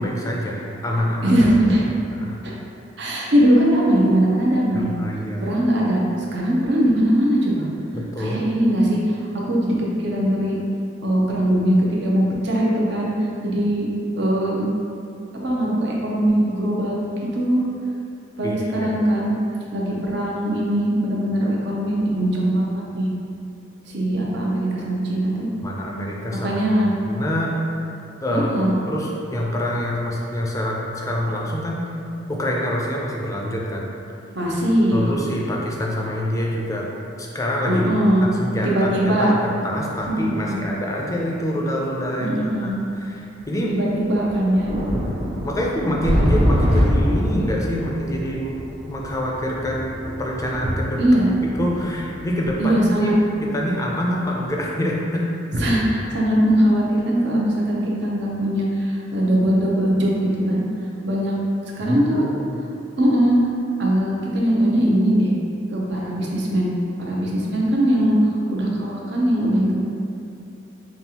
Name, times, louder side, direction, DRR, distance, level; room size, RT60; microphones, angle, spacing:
voice 1, 0.0-1.4 2.1-2.4 4.7-5.5 7.9-8.4 18.4-19.0 25.6-26.6 27.1-27.6 28.2-31.9 32.3-33.9 34.9-36.9 37.2-42.7 43.0-43.8 45.4-48.5 48.9-51.0 51.6-53.1 53.4-55.3 61.9-62.6, equal, 20° left, -2 dB, 0.4 m, -26 dB
voice 2, 1.2-1.8 2.4-2.5 3.0-4.9 5.4-6.0 6.3-7.7 8.2-9.2 9.4-10.6 11.0-13.1 13.4-13.9 14.2-14.7 15.4-17.6 18.4-19.3 19.7-23.1 23.9-25.5 26.4-26.9 28.3-28.7 34.3-35.1 37.7-38.3 38.6-39.3 40.1-40.6 42.2-42.8 43.7-44.7 51.0-51.3 52.6-53.1 55.6-60.6 61.0-61.3 61.8-62.2 63.0-63.4 63.8-65.3 65.7-66.7 67.0-69.7, right 1 dB, 65° right, -4 dB, 0.7 m, -20 dB
sound 1, 43.4-43.5 44.0-54.1 54.5-54.6, equal, 30° right, 0.6 m, -25 dB
5.3 x 2.4 x 2.8 m, 2.7 s
head